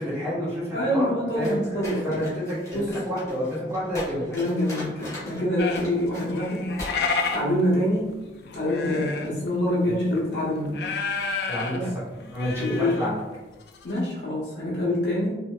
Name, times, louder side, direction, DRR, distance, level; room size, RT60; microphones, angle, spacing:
voice 1, 0.0-1.0 1.3-2.4 3.1-4.4 9.8-9.9 11.4-11.7 12.3-13.1, equal, 15° right, -10 dB, 1.3 m, -29 dB
voice 2, 0.7-1.5 1.7-2.2 2.7-2.9 4.3-6.7 7.3-8.1 8.5-10.9 11.7-11.8 12.6-12.9 13.8-15.4, left 1 dB, 85° left, -7 dB, 1.1 m, -25 dB
sound 1, 1.4-5.4 5.7-6.3 6.8-6.9 7.2-7.4, left 2 dB, 15° left, 0.8 m, -40 dB
sound 2, 5.6-9.5 9.9-10.2 10.7-11.8 12.1-13.1 13.3-13.4 13.7-14.0, left 4 dB, 65° left, 0.3 m, -30 dB
2.9 x 2.8 x 2.3 m, 1.1 s
head